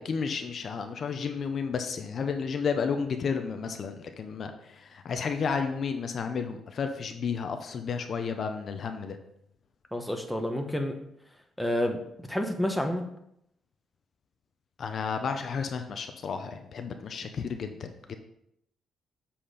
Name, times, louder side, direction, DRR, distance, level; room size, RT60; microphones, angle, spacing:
voice 1, 0.0-9.2 14.8-18.1, left 5 dB, 55° left, 7 dB, 0.7 m, -32 dB
voice 2, 9.9-11.0 11.6-12.0 12.3-13.0, left 1 dB, ahead, 4 dB, 1.1 m, -29 dB
7.6 x 4.3 x 5.0 m, 0.76 s
cardioid pair, 90°, 0 cm